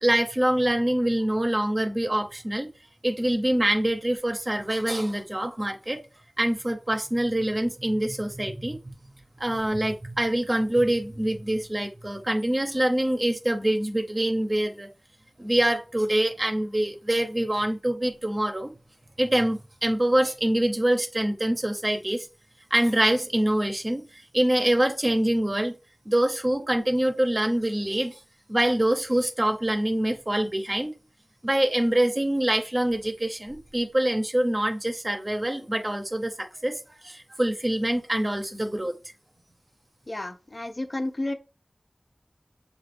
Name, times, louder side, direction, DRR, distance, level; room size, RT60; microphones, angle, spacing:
voice 1, 0.0-2.7 3.0-6.0 6.4-8.9 9.4-14.9 15.4-18.7 19.2-22.3 22.7-25.8 26.1-28.2 28.5-30.9 31.4-39.0, right 1 dB, 35° right, 0.6 m, -25 dB
voice 2, 40.1-41.3, left 1 dB, 45° left, 0.5 m, -31 dB
6.8 x 2.3 x 3.3 m
wide cardioid pair, 60°, 0 cm